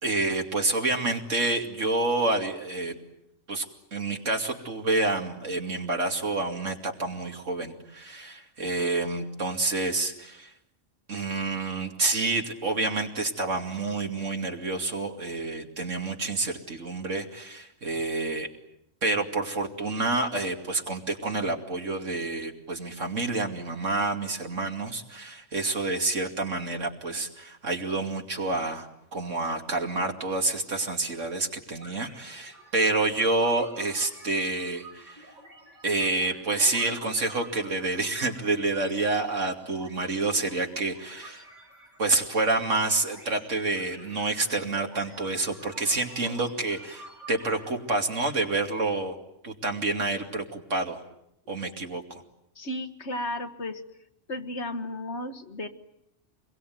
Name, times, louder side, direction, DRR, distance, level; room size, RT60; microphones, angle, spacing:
voice 1, 0.0-3.0 3.5-3.6 3.9-10.5 11.1-18.5 19.0-35.3 35.8-41.4 42.0-49.1 49.4-51.0 51.5-52.2, right 2 dB, 75° right, 3 dB, 3.0 m, -28 dB
sound 1, 31.7-47.7, right 1 dB, 40° right, 5.5 m, -50 dB
voice 2, 52.6-53.8 54.3-55.7, left 1 dB, 60° left, 7 dB, 1.9 m, -34 dB
27.5 x 22.0 x 9.4 m, 0.81 s
omnidirectional pair, 1.3 m